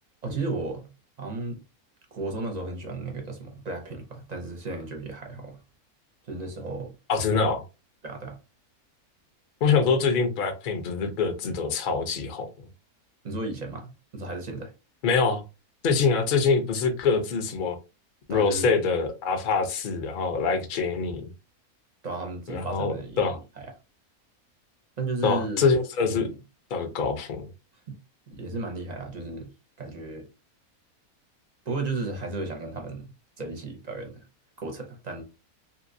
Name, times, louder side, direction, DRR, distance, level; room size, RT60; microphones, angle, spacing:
voice 1, 0.2-0.9 1.2-1.6 2.1-5.6 6.3-6.9 7.3-7.5 8.0-8.4 13.2-14.7 18.3-18.7 22.0-23.7 25.0-25.7 26.0-26.4 27.9-28.0 28.3-29.5 29.8-30.3 31.7-33.1 33.4-34.2 34.6-35.2, right 3 dB, 45° right, 0.5 m, -34 dB
voice 2, 7.1-7.6 9.6-12.5 15.0-15.4 15.8-17.8 18.3-21.3 22.5-23.4 25.2-26.3 26.7-27.5, left 5 dB, 55° left, 0.6 m, -24 dB
2.9 x 2.8 x 2.6 m
omnidirectional pair, 1.6 m